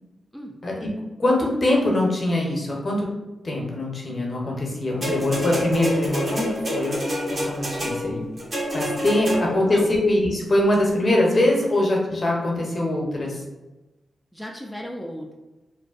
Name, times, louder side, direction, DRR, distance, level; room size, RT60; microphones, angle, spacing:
voice 1, 1.2-3.1 3.4-8.3 8.7-13.4, left 1 dB, 50° left, -2 dB, 0.7 m, -23 dB
sound 1, 5.0-9.8 10.7-10.8, equal, 55° right, 1.1 m, -27 dB
voice 2, 9.5-9.9 14.3-15.3, equal, 5° right, 0 dB, 0.4 m, -36 dB
2.5 x 2.2 x 2.4 m, 1.1 s
supercardioid pair, 45°, 0 cm